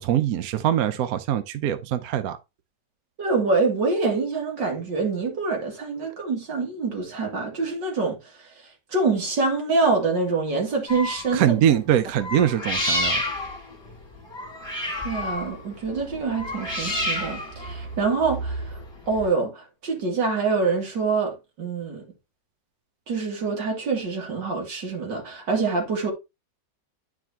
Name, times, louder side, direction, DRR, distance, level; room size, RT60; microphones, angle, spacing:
voice 1, 0.0-2.4 11.3-13.2, right 10 dB, 65° right, 1.1 m, -23 dB
voice 2, 3.2-8.2 8.9-11.5 15.0-18.8 19.1-22.0 23.1-26.1, right 4 dB, 85° right, 2.9 m, -25 dB
sound 1, 10.9-11.5 12.2-19.3, left 1 dB, 15° left, 2.1 m, -30 dB
11.0 x 4.9 x 2.8 m
omnidirectional pair, 1.9 m